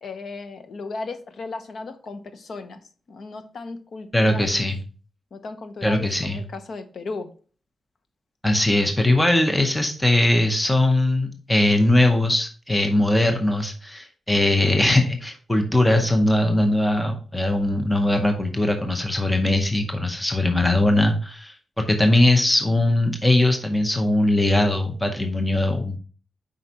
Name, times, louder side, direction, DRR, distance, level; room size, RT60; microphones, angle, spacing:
voice 1, 0.0-4.7 5.3-7.3, left 3 dB, 55° left, 9 dB, 0.8 m, -36 dB
voice 2, 4.1-4.8 5.8-6.4 8.4-26.0, left 1 dB, 10° left, 5 dB, 0.7 m, -20 dB
7.7 x 5.1 x 2.8 m, 0.39 s
wide cardioid pair, 165°, 0 cm